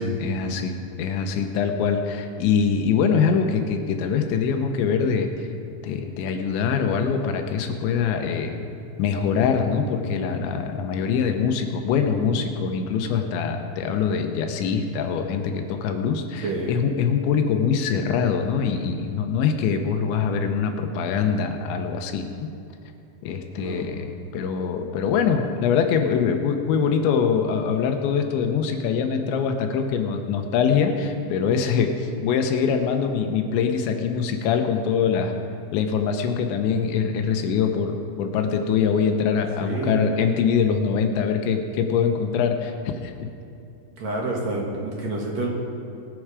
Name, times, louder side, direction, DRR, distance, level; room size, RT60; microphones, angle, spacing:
voice 1, 0.0-5.3 5.8-8.6 9.0-22.5 23.2-35.3 35.7-43.1, left 6 dB, 80° left, 5 dB, 3.2 m, -23 dB
voice 2, 39.6-40.0 44.0-45.5, right 2 dB, 60° right, -2 dB, 2.0 m, -28 dB
22.0 x 7.8 x 4.9 m, 2.7 s
omnidirectional pair, 5.2 m